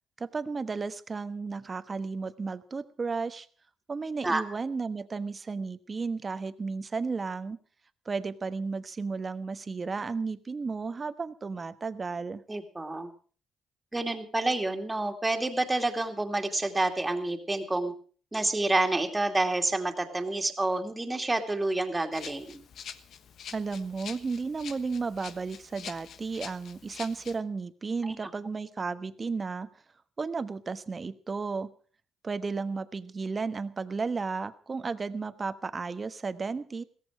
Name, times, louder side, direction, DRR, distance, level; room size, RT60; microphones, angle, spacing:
voice 1, 0.2-3.5 3.9-7.6 8.0-12.4 23.5-29.7 30.2-31.7 32.2-36.8, right 4 dB, 35° right, 12 dB, 1.2 m, -33 dB
voice 2, 12.5-13.1 13.9-17.9 18.3-22.6 28.0-28.2, right 2 dB, 15° right, 4 dB, 2.5 m, -28 dB
Rattle (instrument), 22.1-27.4, left 8 dB, 65° left, 1.2 m, -45 dB
16.5 x 14.5 x 5.0 m, 0.41 s
cardioid pair, 90°, 0 cm